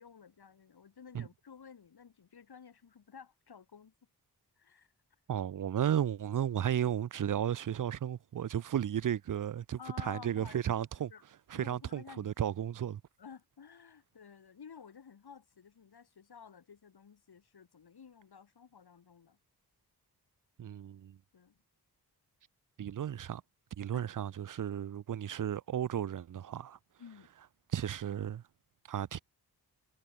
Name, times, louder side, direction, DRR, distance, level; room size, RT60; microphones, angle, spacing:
voice 1, 0.0-3.9 4.6-4.9 9.8-11.2 11.5-12.3 13.2-19.4 21.3-21.6 23.9-24.0 27.0-27.3, left 6 dB, 75° left, 6.1 m, -53 dB
voice 2, 5.3-11.1 11.5-13.0 20.6-21.2 22.8-23.4 23.8-26.8 27.7-28.4 28.9-29.2, right 10 dB, 55° right, 0.6 m, -34 dB
cardioid pair, 55°, 39 cm